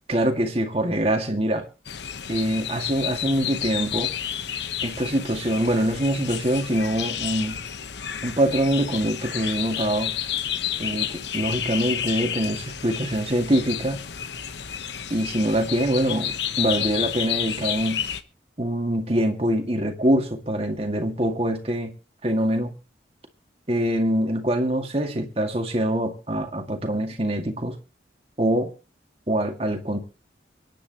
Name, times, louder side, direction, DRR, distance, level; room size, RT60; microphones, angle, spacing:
voice 1, 0.1-1.7 2.3-4.1 4.8-7.6 8.2-10.1 10.8-14.0 15.1-18.0 18.6-21.9 22.2-22.7 23.7-27.7 28.4-28.7 29.3-30.0, right 1 dB, 35° right, 2.0 m, -24 dB
sound 1, 1.8-18.2, left 9 dB, 70° left, 1.0 m, -31 dB
25.0 x 10.0 x 3.0 m
head